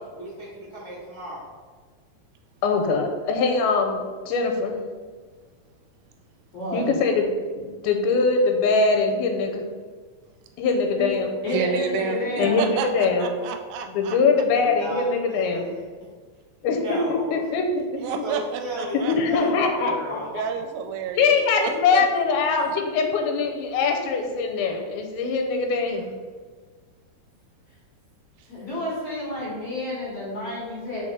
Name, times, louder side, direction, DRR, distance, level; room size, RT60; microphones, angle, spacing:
voice 1, 0.1-1.5 12.2-13.0 14.5-16.1 16.6-17.5 17.9-20.3, right 1 dB, 30° left, -9 dB, 0.8 m, -35 dB
voice 2, 2.6-4.7 6.7-7.3 7.6-9.6 10.6-11.3 12.4-13.3 13.9-15.7 16.6-17.6 19.1-20.4 21.2-26.1, left 4 dB, 90° left, 4 dB, 2.6 m, -22 dB
voice 3, 6.5-6.9 11.0-11.1 11.4-12.7 28.5-31.0, left 1 dB, 45° left, -8 dB, 2.6 m, -30 dB
voice 4, 11.5-14.2 17.9-19.2 20.3-22.1 22.7-22.8, right 7 dB, 80° right, 6 dB, 2.3 m, -30 dB
5.7 x 4.1 x 4.7 m, 1.5 s
omnidirectional pair, 4.4 m